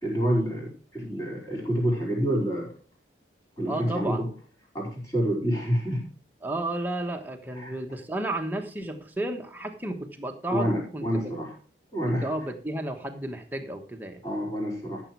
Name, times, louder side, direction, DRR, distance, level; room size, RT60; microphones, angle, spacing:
voice 1, 0.0-2.7 3.6-4.3 4.7-6.1 7.5-7.7 10.5-11.5 11.9-12.3 14.2-15.0, equal, 20° left, -3 dB, 4.8 m, -28 dB
voice 2, 3.7-4.3 6.4-11.2 12.0-14.2, right 1 dB, 10° right, 4 dB, 1.2 m, -32 dB
13.5 x 7.1 x 4.7 m, 0.41 s
head